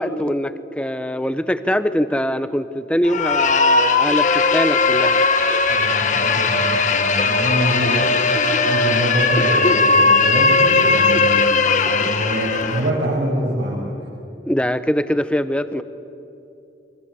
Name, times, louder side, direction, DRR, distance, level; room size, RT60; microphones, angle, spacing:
voice 1, 0.0-5.2 14.5-15.8, equal, 5° left, 12 dB, 0.9 m, -22 dB
sound 1, 3.0-12.9, left 4 dB, 40° left, 1.5 m, -18 dB
voice 2, 5.7-8.2 8.6-13.9, right 1 dB, 75° right, -4 dB, 6.7 m, -25 dB
28.5 x 23.5 x 8.3 m, 2.7 s
head